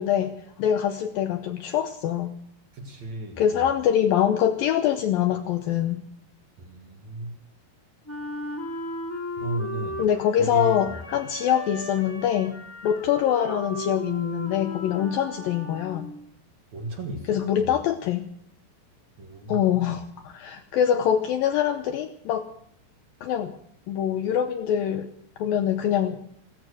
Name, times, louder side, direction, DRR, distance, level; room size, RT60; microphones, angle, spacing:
voice 1, 0.0-2.3 3.4-6.0 10.0-12.6 12.8-16.1 17.3-18.3 19.5-22.5 23.2-23.5 23.9-25.1 25.4-26.2, left 9 dB, 75° left, 7 dB, 2.2 m, -24 dB
voice 2, 2.7-3.6 6.6-7.4 9.4-10.0 10.4-11.0 16.7-17.7 19.2-19.9, right 2 dB, 50° right, 3 dB, 2.4 m, -34 dB
Wind instrument woodwind instrument, 8.1-16.2, left 1 dB, 5° left, 1.6 m, -36 dB
15.5 x 14.0 x 6.3 m, 0.67 s
omnidirectional pair, 4.9 m